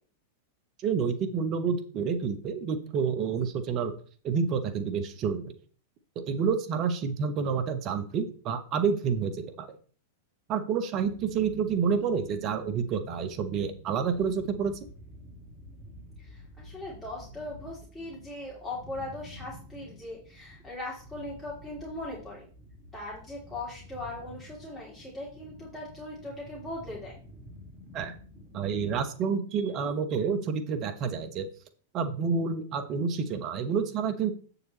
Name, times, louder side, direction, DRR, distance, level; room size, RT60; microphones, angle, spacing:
voice 1, 0.8-3.9 4.2-5.5 6.3-9.7 10.5-14.8 27.9-28.1 28.5-31.5 31.9-34.3, right 6 dB, 35° right, 8 dB, 1.2 m, -29 dB
sound 1, 10.9-29.0, left 1 dB, 20° right, 2.7 m, -50 dB
voice 2, 16.2-22.5 22.9-27.1, left 2 dB, 10° left, -5 dB, 2.9 m, -39 dB
8.3 x 7.0 x 4.2 m, 0.42 s
figure-of-eight pair, 95°, 0 cm